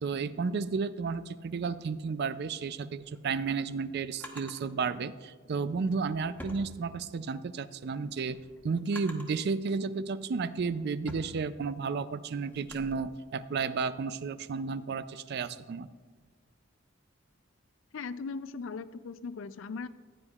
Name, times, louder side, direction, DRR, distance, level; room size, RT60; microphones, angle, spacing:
voice 1, 0.0-8.4 8.6-15.9, right 5 dB, 55° right, 14 dB, 0.4 m, -32 dB
Drawer open or close, 3.2-4.7 5.7-7.3 7.8-9.5 10.1-12.9, equal, 10° left, 1.0 m, -48 dB
voice 2, 17.9-19.9, left 4 dB, 65° left, 14 dB, 0.4 m, -38 dB
15.0 x 9.6 x 2.4 m, 1.5 s
head